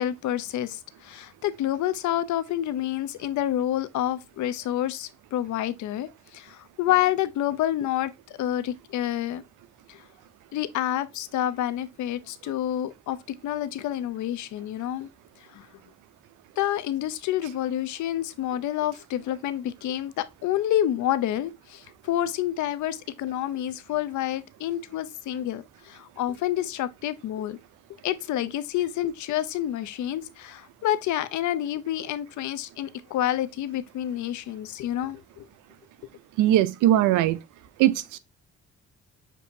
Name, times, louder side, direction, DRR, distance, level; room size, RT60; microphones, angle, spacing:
voice 1, 0.0-8.1 8.4-9.4 9.9-10.0 10.5-13.2 13.4-15.1 15.5-15.7 16.6-27.6 28.0-35.5, left 12 dB, 75° left, 0.5 m, -28 dB
voice 2, 36.4-37.4 37.8-38.2, right 13 dB, 90° right, 0.5 m, -20 dB
6.8 x 2.7 x 2.6 m
cardioid pair, 90°, 30 cm